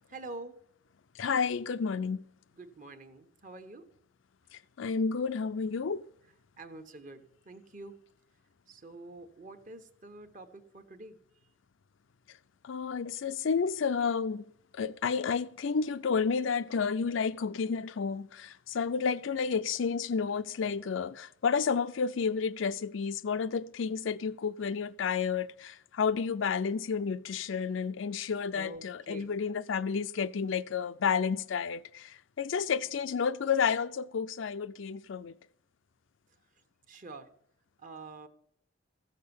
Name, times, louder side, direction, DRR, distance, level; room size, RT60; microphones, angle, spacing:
voice 1, 0.1-0.6 2.6-3.9 6.6-8.0 8.7-11.2 28.5-29.3 36.9-37.3 37.8-38.3, right 2 dB, 40° right, 1.2 m, -46 dB
voice 2, 1.2-2.2 4.5-6.1 12.6-14.4 14.7-35.4, left 6 dB, 80° left, 0.5 m, -31 dB
15.0 x 6.6 x 7.0 m
head